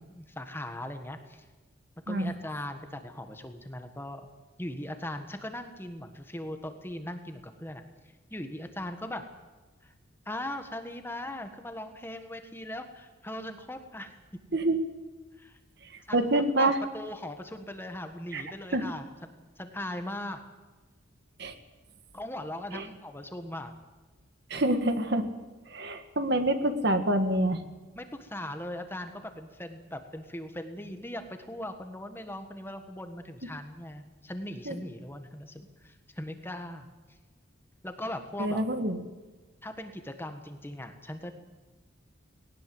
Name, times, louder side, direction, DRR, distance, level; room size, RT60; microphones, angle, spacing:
voice 1, 0.0-1.4 2.1-4.3 4.6-7.8 8.3-9.2 9.8-9.9 10.2-14.1 15.4-15.6 16.1-19.1 19.6-20.4 22.1-23.7 28.0-36.9 37.8-38.6 39.6-41.3, left 1 dB, 10° left, 7 dB, 1.4 m, -39 dB
voice 2, 16.1-16.8 18.3-18.4 18.7-18.9 21.4-21.5 22.7-22.9 24.5-25.3 25.7-27.6 34.7-34.8 38.4-39.0, right 1 dB, 55° right, 8 dB, 1.8 m, -26 dB
19.5 x 18.5 x 7.8 m, 1.3 s
head